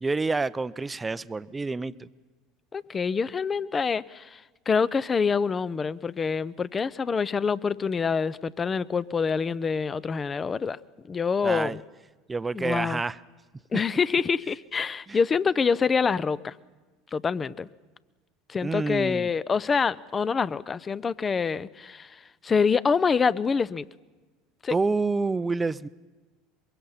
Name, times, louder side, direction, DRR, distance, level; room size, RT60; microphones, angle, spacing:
voice 1, 0.0-2.1 11.4-11.8 12.3-13.2 15.1-15.2 18.6-19.3 24.7-25.9, right 3 dB, 20° right, 0.6 m, -28 dB
voice 2, 2.7-10.8 11.1-11.8 12.5-13.0 13.7-16.6 17.1-17.7 18.5-23.8 24.6-24.7, left 5 dB, 25° left, 0.6 m, -26 dB
23.5 x 22.0 x 5.7 m
hypercardioid pair, 80°, 0 cm